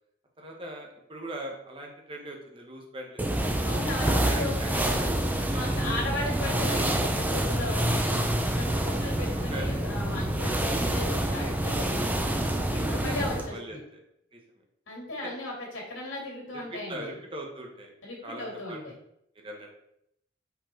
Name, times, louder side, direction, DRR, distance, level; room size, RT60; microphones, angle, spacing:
voice 1, 0.4-3.8 4.3-4.7 5.4-5.9 8.7-9.2 9.5-9.9 12.0-12.8 13.5-14.0 14.3-14.4 15.2-15.3 16.7-17.9 18.2-18.8 19.4-19.7, right 1 dB, 25° right, 1 dB, 1.2 m, -41 dB
sound 1, 3.2-13.5, right 1 dB, 10° right, 0.5 m, -27 dB
voice 2, 3.6-5.1 5.5-12.0 12.7-13.8 14.9-17.1 18.0-18.9, left 2 dB, 75° left, -2 dB, 2.6 m, -36 dB
5.4 x 4.6 x 4.5 m, 0.76 s
head